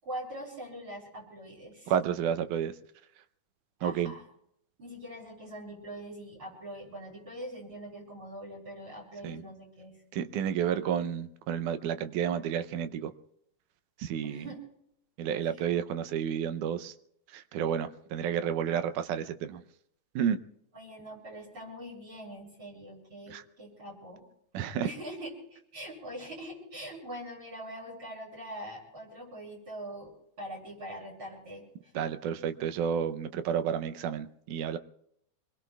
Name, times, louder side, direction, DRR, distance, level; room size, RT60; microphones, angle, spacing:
voice 1, 0.0-1.9 3.8-4.2 4.8-10.0 14.2-14.6 15.4-15.6 20.7-24.2 24.6-30.1 30.4-32.0, right 1 dB, 40° right, -3 dB, 7.5 m, -43 dB
voice 2, 1.9-2.7 3.8-4.1 9.2-9.4 10.1-13.1 14.0-14.5 15.2-16.9 17.3-19.6 20.2-20.4 23.3-23.4 24.5-24.9 32.0-34.8, right 8 dB, 85° right, 11 dB, 2.3 m, -31 dB
26.5 x 21.5 x 2.4 m, 0.73 s
omnidirectional pair, 3.5 m